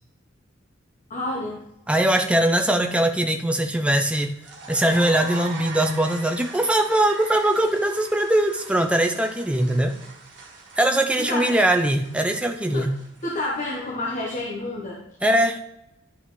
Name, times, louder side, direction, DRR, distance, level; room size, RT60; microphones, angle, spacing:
voice 1, 1.1-1.6 11.2-11.6 12.7-12.9 13.2-15.0, left 2 dB, 40° left, -3 dB, 1.1 m, -29 dB
voice 2, 1.9-4.3 4.7-9.9 10.8-12.9 15.2-15.6, right 1 dB, 5° right, 4 dB, 0.6 m, -21 dB
sound 1, 4.2-13.5, right 3 dB, 60° right, 1.8 m, -41 dB
11.0 x 6.0 x 3.1 m, 0.86 s
head